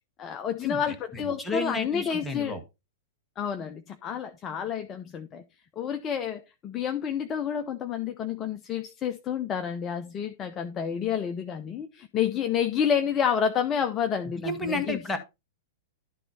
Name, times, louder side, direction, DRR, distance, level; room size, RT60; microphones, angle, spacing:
voice 1, 0.2-2.6 3.4-5.4 5.8-15.2, left 8 dB, 25° left, 0.7 m, -29 dB
voice 2, 1.1-2.6 14.4-15.2, left 2 dB, 10° left, 1.7 m, -31 dB
12.0 x 4.0 x 4.3 m
figure-of-eight pair, 100°, 0 cm